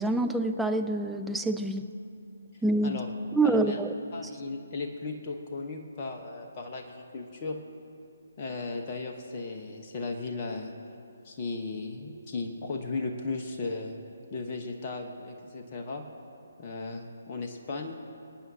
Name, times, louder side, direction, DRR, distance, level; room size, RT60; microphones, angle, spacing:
voice 1, 0.0-1.9 2.6-3.0 3.3-3.9, right 2 dB, ahead, 5 dB, 0.4 m, -26 dB
voice 2, 2.5-3.1 3.4-3.8 4.1-7.6 8.4-10.7 11.2-14.0 14.3-16.0 16.6-17.9, left 3 dB, 30° left, 2 dB, 1.2 m, -36 dB
27.0 x 9.2 x 2.9 m, 2.5 s
figure-of-eight pair, 140°, 0 cm